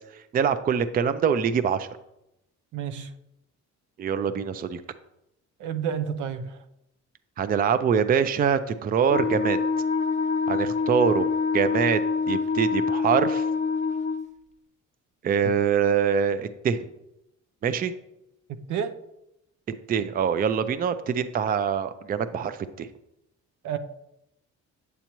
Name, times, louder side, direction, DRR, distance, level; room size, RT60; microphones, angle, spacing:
voice 1, 0.3-1.9 4.0-4.8 7.4-9.6 10.5-11.3 11.5-12.0 12.3-13.4 15.2-16.8 17.6-17.9 19.9-22.9, right 7 dB, 30° right, 12 dB, 0.4 m, -24 dB
voice 2, 2.7-3.1 5.6-6.6 18.7-18.9 23.6-23.8, right 8 dB, 80° right, 9 dB, 0.7 m, -30 dB
Wind instrument woodwind instrument, 9.1-14.2, left 4 dB, 25° left, 0.6 m, -26 dB
8.6 x 8.1 x 3.0 m, 0.85 s
cardioid pair, 140°, 30 cm